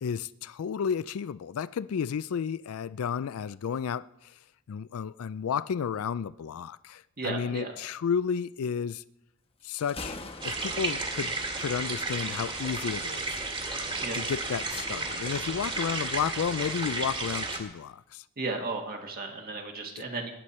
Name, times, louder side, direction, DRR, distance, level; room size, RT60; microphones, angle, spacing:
voice 1, 0.0-4.4 4.7-9.0 9.6-10.2 10.4-13.4 14.1-18.2 20.0-20.1, left 7 dB, 70° left, 0.4 m, -32 dB
voice 2, 7.2-7.7 14.0-14.2 18.4-20.3, right 3 dB, 45° right, 1.7 m, -34 dB
Thunder, 9.6-16.8, left 2 dB, 25° left, 1.2 m, -47 dB
sound 1, 10.4-17.6, right 3 dB, 25° right, 2.0 m, -33 dB
19.0 x 10.0 x 4.3 m
head